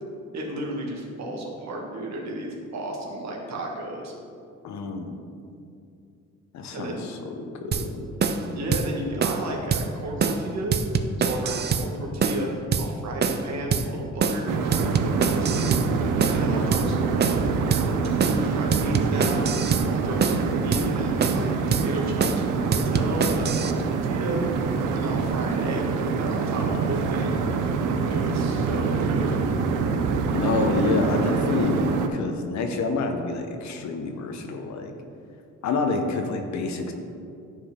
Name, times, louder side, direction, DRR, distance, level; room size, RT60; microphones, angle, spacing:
voice 1, 0.3-4.1 6.7-7.1 8.3-10.8 11.2-15.8 16.3-17.5 18.3-24.4 24.9-27.4 28.0-29.4, right 1 dB, 65° right, -1 dB, 1.5 m, -33 dB
voice 2, 4.6-5.2 6.5-7.3 7.6-8.0 30.3-34.9 35.6-36.9, left 3 dB, 65° left, 5 dB, 0.9 m, -28 dB
sound 1, 7.7-7.9 8.2-8.4 8.7-8.9 9.2-9.4 9.7-9.9 10.2-10.4 10.7-11.9 12.2-12.4 12.7-12.9 13.2-13.4 13.7-13.9 14.2-14.4 14.7-15.9 16.2-16.4 16.7-16.9 17.2-17.4 17.7-17.9 18.2-18.4 18.7-19.9 20.2-20.4 20.7-20.9 21.2-21.5 21.7-21.9 22.2-22.4 22.7-23.7, right 6 dB, 35° right, 0.5 m, -24 dB
sound 2, 14.5-32.1, right 5 dB, 85° right, 0.6 m, -25 dB
10.5 x 4.7 x 3.7 m, 2.5 s
cardioid pair, 90°, 30 cm